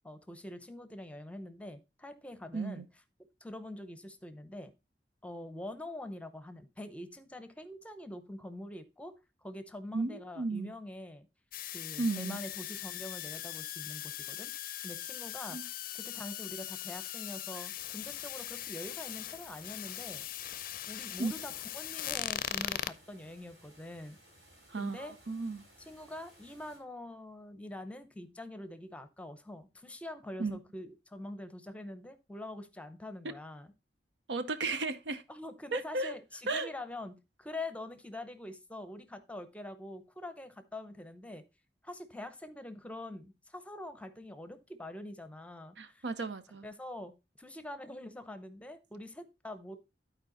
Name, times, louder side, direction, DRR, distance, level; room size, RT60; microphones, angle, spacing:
voice 1, 0.0-2.8 3.4-4.7 5.2-9.1 9.4-11.3 11.7-14.5 14.8-20.2 20.9-24.2 24.8-25.1 25.9-33.7 35.3-41.4 41.8-46.0 46.6-47.1 47.4-49.8, left 1 dB, 10° left, 0.7 m, -45 dB
voice 2, 2.5-2.8 9.9-10.7 12.0-12.4 15.5-15.6 21.2-21.3 24.7-25.6 30.4-30.6 33.2-33.3 34.3-35.2 35.7-36.1 36.5-36.7 45.8-46.7, right 3 dB, 85° right, 0.8 m, -34 dB
sound 1, 11.5-22.9, left 12 dB, 55° left, 0.5 m, -40 dB
sound 2, 18.0-26.8, equal, 70° right, 4.6 m, -60 dB
12.0 x 4.6 x 3.9 m
head